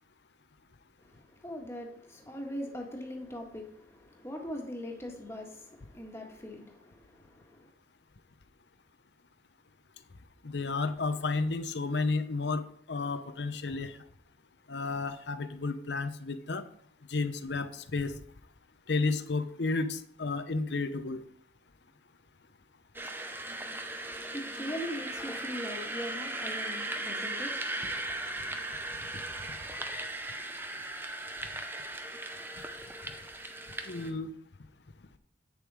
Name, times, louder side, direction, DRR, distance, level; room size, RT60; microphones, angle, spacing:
voice 1, 1.0-7.7 23.6-28.6, equal, 15° left, 1.7 m, -42 dB
voice 2, 10.4-14.0 14.7-16.6 17.1-18.2 18.9-21.2 33.8-34.3, left 3 dB, 65° left, 0.8 m, -32 dB
sound 1, 22.9-34.1, right 2 dB, 10° right, 0.7 m, -38 dB
9.1 x 7.0 x 4.9 m
head